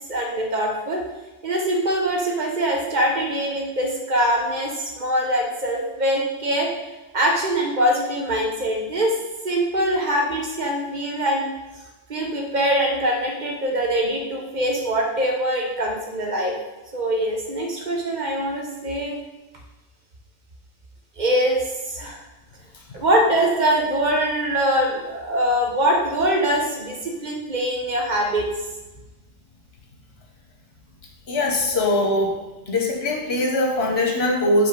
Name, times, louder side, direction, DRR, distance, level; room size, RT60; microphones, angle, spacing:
voice 1, 0.1-1.0 1.4-6.7 7.1-9.2 9.4-11.5 12.1-16.6 16.9-19.2 21.2-22.2 22.9-28.5, right 1 dB, 45° right, 0 dB, 1.1 m, -23 dB
voice 2, 31.3-32.3 32.7-34.7, left 1 dB, 70° left, 0 dB, 1.3 m, -21 dB
5.1 x 4.2 x 5.1 m, 1.1 s
omnidirectional pair, 1.1 m